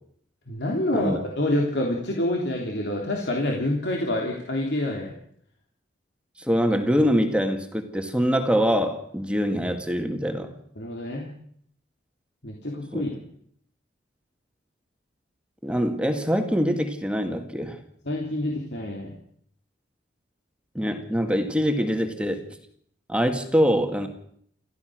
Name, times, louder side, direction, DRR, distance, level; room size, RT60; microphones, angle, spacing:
voice 1, 0.5-5.1 10.8-11.3 12.4-13.2 18.0-19.1, left 1 dB, 65° left, 0 dB, 3.3 m, -27 dB
voice 2, 6.4-10.5 12.9-13.0 15.6-17.8 20.7-22.5 23.1-24.1, equal, 5° right, 5 dB, 2.2 m, -24 dB
29.0 x 14.5 x 6.5 m, 0.66 s
head